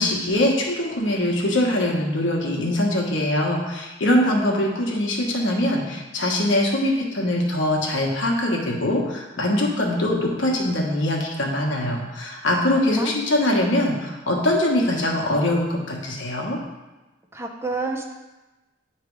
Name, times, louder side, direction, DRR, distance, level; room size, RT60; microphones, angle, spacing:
voice 1, 0.0-16.6, left 1 dB, 75° left, -1 dB, 1.3 m, -22 dB
voice 2, 12.7-13.1 17.3-18.1, right 3 dB, 15° right, 3 dB, 0.5 m, -29 dB
9.3 x 3.3 x 4.6 m, 1.1 s
head